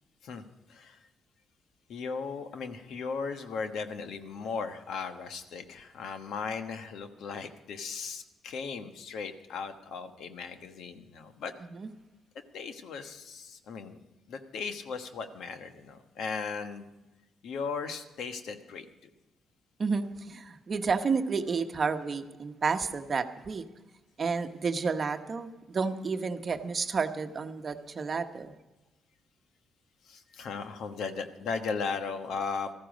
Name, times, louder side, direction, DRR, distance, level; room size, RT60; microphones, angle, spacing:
voice 1, 0.2-1.1 1.9-11.5 12.5-14.0 14.3-16.9 17.4-19.1 30.0-32.7, left 5 dB, 75° left, 8 dB, 1.2 m, -37 dB
voice 2, 19.8-23.6 24.2-28.5, right 5 dB, 40° right, 8 dB, 1.0 m, -31 dB
14.5 x 13.5 x 5.2 m, 1.1 s
cardioid pair, 90°, 0 cm